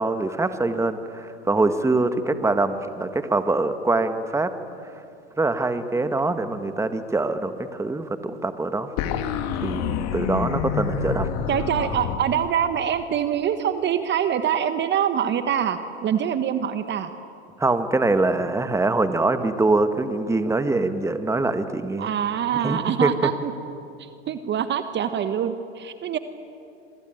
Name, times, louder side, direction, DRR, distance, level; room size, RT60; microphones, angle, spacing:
voice 1, 0.0-4.5 5.4-8.9 9.6-11.3 17.6-22.1 22.6-23.1, right 2 dB, 10° right, 9 dB, 1.6 m, -24 dB
sound 1, 9.0-12.2, left 7 dB, 50° left, 2.3 m, -27 dB
voice 2, 11.5-17.1 22.0-23.5 24.0-26.2, right 9 dB, 30° right, 10 dB, 1.4 m, -24 dB
26.5 x 23.0 x 9.2 m, 2.6 s
hypercardioid pair, 95°, 33 cm